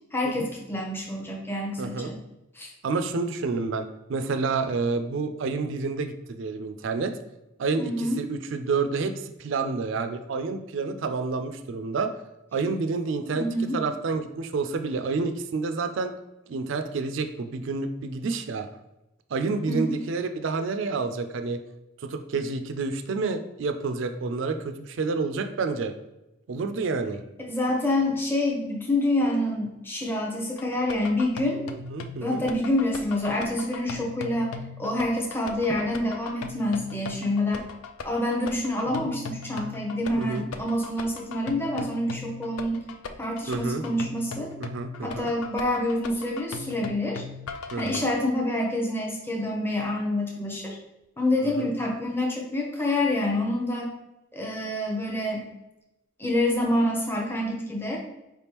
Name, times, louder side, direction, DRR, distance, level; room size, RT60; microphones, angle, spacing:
voice 1, 0.1-2.2 2.5-2.7 7.8-8.2 13.3-13.8 19.7-20.0 27.5-31.6 32.2-37.6 38.0-42.9 43.2-44.5 45.0-47.2 47.8-50.8 51.2-53.9 54.3-55.5 56.2-58.0, left 1 dB, 10° left, -1 dB, 0.6 m, -27 dB
voice 2, 1.8-2.1 2.8-7.2 7.6-12.1 12.5-13.5 13.7-16.1 16.5-18.7 19.3-21.6 22.0-25.9 26.5-27.2 31.7-32.5 39.0-39.1 40.2-40.5 43.5-43.8 44.6-45.3 47.7-48.1 51.6-51.7, right 4 dB, 60° right, 8 dB, 0.4 m, -29 dB
sound 1, 30.6-48.1, left 4 dB, 85° left, 0.4 m, -39 dB
4.7 x 3.4 x 2.9 m, 0.95 s
head